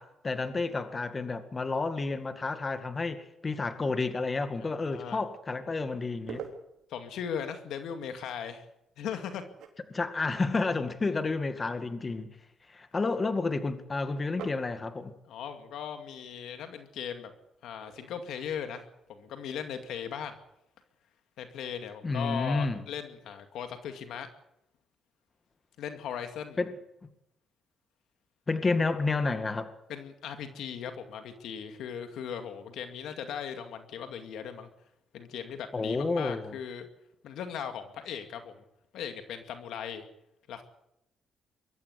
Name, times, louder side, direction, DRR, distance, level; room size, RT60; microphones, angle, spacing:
voice 1, 0.0-6.4 9.9-12.4 12.7-15.1 22.0-22.8 26.6-26.7 28.5-29.7 35.7-36.6, left 3 dB, 30° left, 2.1 m, -30 dB
voice 2, 4.6-5.2 6.9-8.6 9.0-9.4 15.3-17.3 17.6-20.4 21.4-24.3 25.8-26.6 29.9-34.7 35.1-36.9 37.2-38.5 38.9-40.0 40.5-40.6, left 8 dB, 80° left, 2.3 m, -38 dB
sound 1, 6.1-20.6, right 6 dB, 80° right, 4.0 m, -52 dB
22.5 x 14.0 x 8.3 m
cardioid pair, 90°, 0 cm